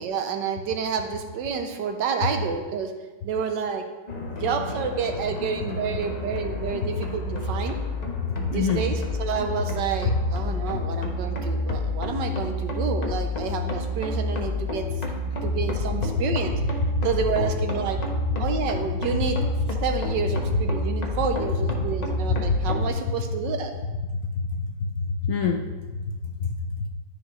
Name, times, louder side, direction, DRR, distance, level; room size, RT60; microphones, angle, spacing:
voice 1, 0.0-2.9 3.2-3.8 4.3-7.7 8.3-14.9 15.2-16.5 17.0-18.0 18.4-19.4 19.8-23.7, right 6 dB, 75° right, 5 dB, 1.4 m, -29 dB
sound 1, 4.1-22.9, left 2 dB, 35° left, 0.7 m, -29 dB
voice 2, 8.4-8.9 10.1-10.2 22.3-22.6 24.2-24.5 24.8-25.6 26.4-26.9, left 5 dB, 60° left, 1 dB, 0.9 m, -26 dB
11.5 x 5.1 x 3.1 m, 1.2 s
omnidirectional pair, 2.0 m